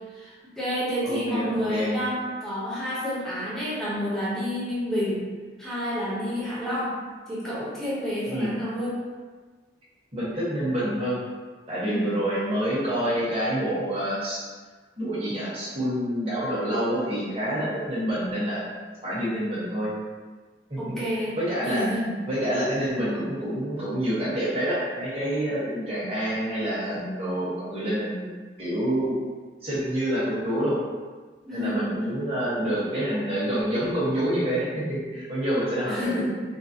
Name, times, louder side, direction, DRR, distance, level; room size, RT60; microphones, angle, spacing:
voice 1, 0.1-5.3 5.6-7.0 7.3-9.0 11.9-12.1 20.8-21.4 21.6-22.1 31.4-31.9 35.8-36.4, equal, ahead, -9 dB, 0.8 m, -29 dB
voice 2, 1.0-2.0 8.3-8.6 10.1-11.2 11.7-14.4 15.0-18.6 19.0-19.9 20.7-21.0 21.4-22.0 22.3-28.3 28.6-29.1 29.6-30.8 31.5-36.2, equal, 30° right, -10 dB, 1.2 m, -27 dB
3.9 x 2.0 x 2.7 m, 1.4 s
head